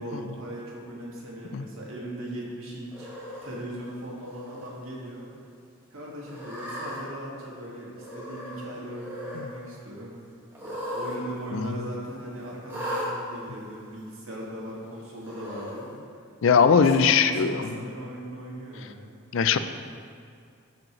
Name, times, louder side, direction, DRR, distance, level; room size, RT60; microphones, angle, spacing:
voice 1, 0.0-3.1 3.4-5.3 5.9-10.1 10.6-15.9 16.5-19.1, right 1 dB, 75° right, -4 dB, 1.9 m, -38 dB
Cat, 2.9-3.5 4.2-4.7 5.0-5.1 6.2-7.0 7.9-8.6 8.9-9.4 10.5-11.2 11.4-11.5 12.7-13.1 14.0-14.1 15.2-15.8, equal, 10° right, 1.7 m, -36 dB
voice 2, 16.4-17.8 19.3-19.6, left 6 dB, 65° left, 11 dB, 0.4 m, -21 dB
13.0 x 5.1 x 3.1 m, 2.3 s
head